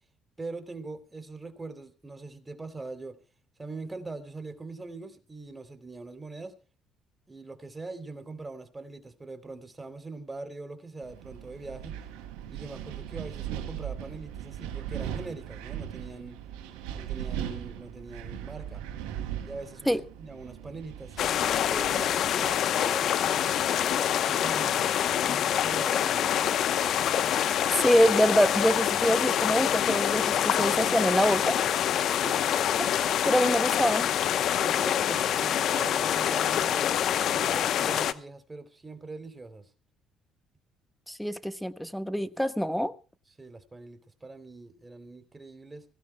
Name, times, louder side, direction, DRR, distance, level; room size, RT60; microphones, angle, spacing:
voice 1, 0.4-3.2 3.6-6.6 7.3-12.0 12.5-16.4 16.9-18.8 19.4-24.8 25.3-26.6 32.2-32.6 34.5-39.7 43.4-45.8, right 3 dB, 25° right, 3.1 m, -42 dB
Wind, 11.0-22.5, right 10 dB, 90° right, 2.4 m, -39 dB
sound 1, 21.2-38.1, left 10 dB, 65° left, 0.9 m, -26 dB
voice 2, 27.8-31.6 32.8-32.9 33.2-34.1 41.1-42.9, equal, ahead, 1.3 m, -25 dB
25.0 x 16.5 x 2.2 m
supercardioid pair, 65°, 0 cm